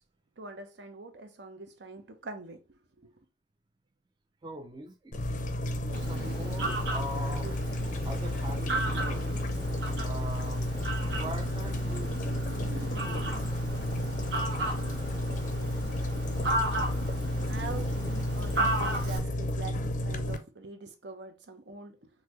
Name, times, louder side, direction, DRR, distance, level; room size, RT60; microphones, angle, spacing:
voice 1, 0.4-2.6 3.0-3.1 16.1-17.1 17.5-22.1, right 3 dB, 70° right, 0.7 m, -44 dB
voice 2, 4.4-5.4 5.8-7.6 8.0-9.4 10.0-10.7 11.0-13.7 14.4-14.5, equal, 25° right, 0.4 m, -43 dB
sound 1, 5.1-20.4, left 1 dB, 45° left, 0.5 m, -32 dB
Fowl, 5.9-19.2, right 2 dB, 85° right, 1.4 m, -35 dB
3.9 x 2.7 x 3.0 m
head